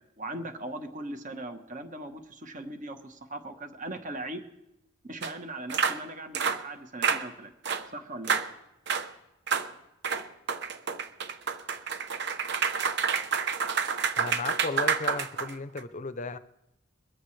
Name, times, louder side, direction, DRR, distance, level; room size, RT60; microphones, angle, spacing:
voice 1, 0.2-4.4 5.0-7.5 7.9-8.4, right 1 dB, 40° right, 7 dB, 1.2 m, -39 dB
sound 1, 5.2-5.3 5.7-6.0 6.3-6.6 7.0-7.2 7.6-7.8 8.2-8.5 8.9-9.1 9.5-9.7 10.0-15.8, right 6 dB, 55° right, 0.8 m, -28 dB
voice 2, 14.2-16.4, left 3 dB, 35° left, 12 dB, 0.6 m, -34 dB
22.0 x 14.5 x 3.3 m, 0.87 s
head